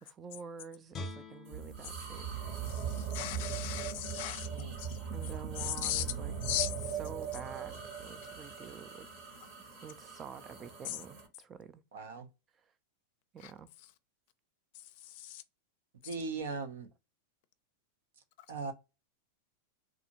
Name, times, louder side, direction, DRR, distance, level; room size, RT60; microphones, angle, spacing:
voice 1, 0.0-2.3 5.1-6.3 7.0-9.1 9.8-11.8 12.5-12.7 13.3-13.7, right 7 dB, 25° right, 0.4 m, -48 dB
Guitar, 0.9-4.1 4.5-4.6, left 2 dB, 25° left, 0.7 m, -48 dB
sound 1, 1.5-11.3, right 7 dB, 60° right, 1.1 m, -40 dB
voice 2, 2.7-5.0 5.6-6.0 6.4-6.9 10.9-11.0 13.4-13.5 15.0-15.4, left 13 dB, 60° left, 0.5 m, -37 dB
voice 3, 11.9-12.3 16.0-16.9 18.5-18.7, right 4 dB, 80° right, 0.7 m, -38 dB
2.6 x 2.4 x 2.8 m
hypercardioid pair, 130°, 0 cm